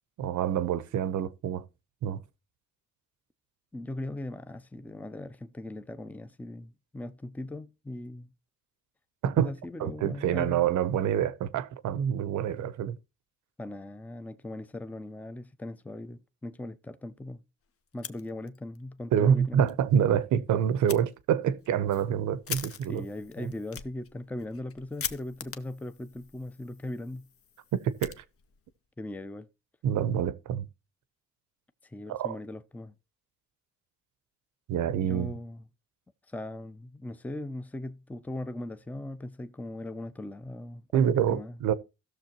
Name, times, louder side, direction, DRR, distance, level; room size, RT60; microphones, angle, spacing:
voice 1, 0.2-1.6 2.0-2.2 9.2-9.5 9.8-13.0 19.1-23.0 23.4-23.5 27.7-28.2 29.8-30.6 32.1-32.4 34.7-35.3 40.9-41.7, right 9 dB, 75° right, 0.8 m, -27 dB
voice 2, 3.7-8.3 9.4-10.6 13.6-17.4 17.9-19.7 22.9-27.3 29.0-29.5 31.8-33.0 35.0-35.6 36.3-41.6, left 1 dB, 5° left, 0.5 m, -39 dB
Fire, 17.9-18.8 19.1-19.2 19.6-19.7 20.9-21.0 21.6-28.7, left 7 dB, 50° left, 0.8 m, -42 dB
17.0 x 6.5 x 2.9 m
cardioid pair, 90°, 30 cm